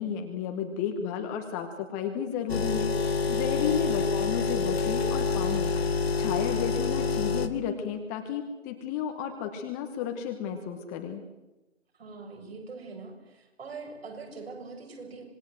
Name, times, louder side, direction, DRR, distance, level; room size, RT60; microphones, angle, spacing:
voice 1, 0.0-5.7 6.2-11.2, left 8 dB, 15° left, 5 dB, 1.2 m, -32 dB
sound 1, 2.5-7.5, left 4 dB, 55° left, 2.0 m, -27 dB
voice 2, 12.0-15.2, right 4 dB, 50° right, 3 dB, 7.3 m, -43 dB
26.0 x 20.0 x 7.8 m, 1.0 s
figure-of-eight pair, 145°, 38 cm